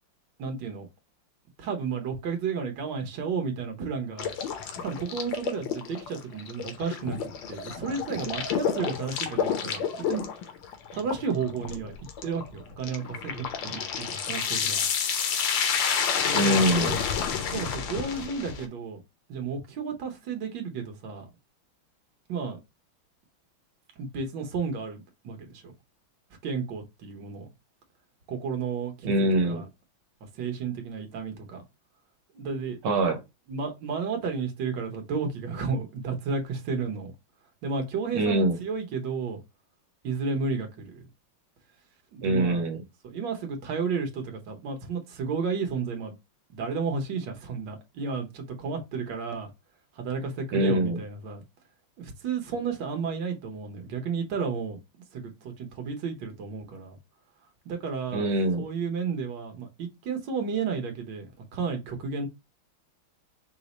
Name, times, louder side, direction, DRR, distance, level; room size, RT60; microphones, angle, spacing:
voice 1, 0.4-0.9 1.6-4.3 4.8-10.3 10.9-11.9 12.2-14.9 16.2-16.6 17.5-19.0 19.3-21.3 22.3-22.6 24.0-25.7 26.4-27.5 28.3-29.7 30.4-31.6 32.3-32.8 33.5-37.1 37.6-39.4 40.0-41.0 42.1-42.6 43.0-46.1 46.5-49.5 50.0-51.4 52.0-54.8 55.1-57.0 57.6-58.3 58.6-62.3, right 5 dB, 65° right, 1.5 m, -32 dB
sound 1, 4.2-18.7, left 7 dB, 70° left, 1.4 m, -30 dB
voice 2, 16.3-17.0 29.0-29.6 32.8-33.2 38.1-38.6 42.2-42.8 50.5-51.0 58.1-58.6, right 1 dB, 85° right, 1.7 m, -24 dB
4.9 x 2.0 x 4.0 m
omnidirectional pair, 2.3 m